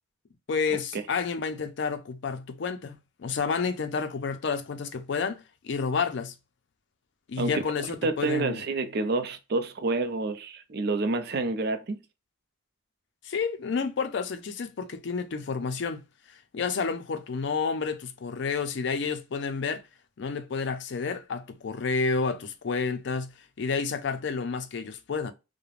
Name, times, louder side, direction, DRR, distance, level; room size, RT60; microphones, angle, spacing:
voice 1, 0.5-6.3 7.3-8.6 13.2-16.0 16.5-19.8 20.2-25.3, left 5 dB, 65° left, 0.4 m, -30 dB
voice 2, 7.9-12.0, right 3 dB, 55° right, 0.5 m, -28 dB
3.1 x 2.1 x 2.4 m
head